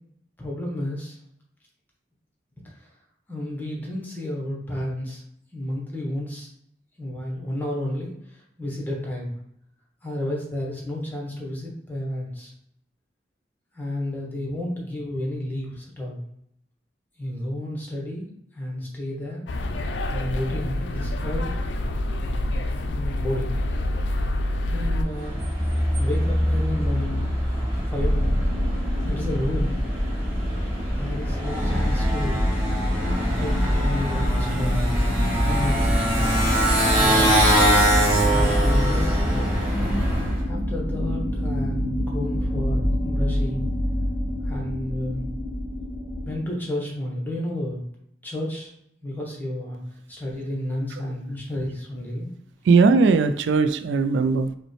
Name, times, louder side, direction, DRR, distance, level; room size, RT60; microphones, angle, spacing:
voice 1, 0.4-1.2 2.8-2.9 3.3-5.2 5.5-6.5 7.0-9.3 10.0-12.5 13.7-16.2 17.2-19.5 20.1-21.6 22.9-23.6 24.7-25.4 26.0-28.3 29.0-29.8 30.9-32.4 33.4-35.0 35.3-36.3 36.9-37.4 38.3-39.6 40.4-43.7 44.4-45.2 46.2-47.8 48.2-48.7 49.0-49.8 50.1-52.3, left 1 dB, 10° left, -2 dB, 0.9 m, -31 dB
sound 1, 19.5-25.0, left 1 dB, 80° left, 0.4 m, -27 dB
Motorcycle, 25.0-40.4, equal, 10° right, 1.2 m, -24 dB
sound 2, 27.9-46.4, equal, 45° right, 1.1 m, -26 dB
voice 2, 52.6-54.6, right 4 dB, 85° right, 10 dB, 0.3 m, -19 dB
5.1 x 2.1 x 3.1 m, 0.73 s
head